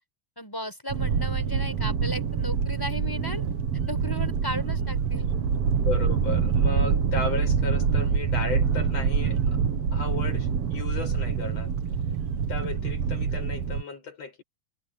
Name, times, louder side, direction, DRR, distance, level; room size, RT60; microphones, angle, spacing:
voice 1, 0.4-3.4 3.9-5.3, left 1 dB, 5° left, 7.6 m, -35 dB
sound 1, 0.9-13.8, right 6 dB, 60° right, 2.6 m, -26 dB
voice 2, 5.8-9.6 9.9-11.7 12.5-14.4, left 4 dB, 55° left, 8.9 m, -34 dB
omnidirectional pair, 3.4 m